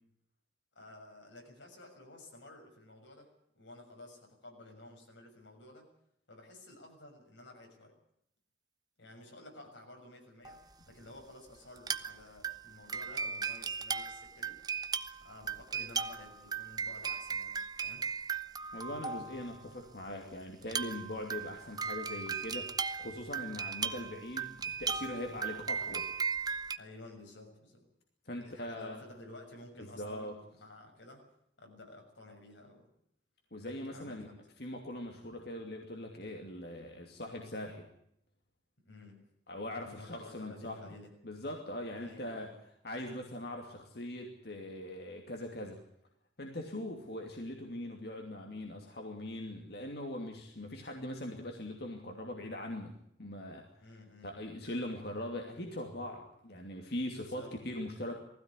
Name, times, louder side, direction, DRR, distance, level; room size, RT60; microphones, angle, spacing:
voice 1, 0.7-3.3 3.5-5.8 6.3-7.9 9.0-10.6 10.9-14.6 15.2-17.5 17.8-18.0 26.8-27.8 28.4-31.2 31.6-32.9 33.9-34.4 38.8-39.2 39.8-41.1 41.9-42.5 53.8-54.3 57.2-57.5, left 2 dB, 90° left, 2 dB, 6.7 m, -52 dB
sound 1, 10.4-10.6 11.8-12.2 12.4-19.7 20.6-26.8, right 6 dB, 20° right, 0.7 m, -37 dB
voice 2, 18.7-26.1 28.3-29.0 29.8-30.4 33.5-34.3 34.6-37.9 39.5-41.0 41.2-42.5 42.8-45.8 46.4-53.6 54.2-58.1, left 1 dB, 60° left, 2 dB, 2.7 m, -41 dB
20.0 x 15.5 x 9.9 m, 0.73 s
head